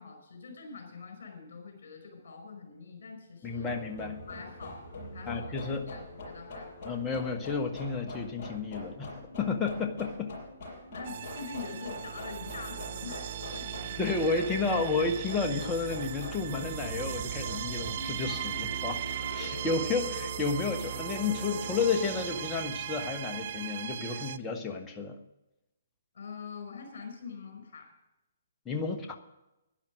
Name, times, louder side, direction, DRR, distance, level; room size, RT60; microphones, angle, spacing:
voice 1, 0.0-3.7 4.3-4.8 5.1-6.9 10.9-14.4 26.1-27.9, left 5 dB, 55° left, 4 dB, 5.2 m, -44 dB
sound 1, 3.4-22.5, left 1 dB, 35° left, 6.3 m, -44 dB
voice 2, 3.4-4.2 5.3-5.8 6.8-9.1 9.4-10.3 14.0-19.0 19.3-25.2 28.6-29.2, left 4 dB, 15° left, 3 dB, 1.3 m, -31 dB
sound 2, 11.0-24.4, right 10 dB, 45° right, 0.5 m, -38 dB
11.5 x 10.5 x 6.3 m, 0.93 s
figure-of-eight pair, 125°, 0 cm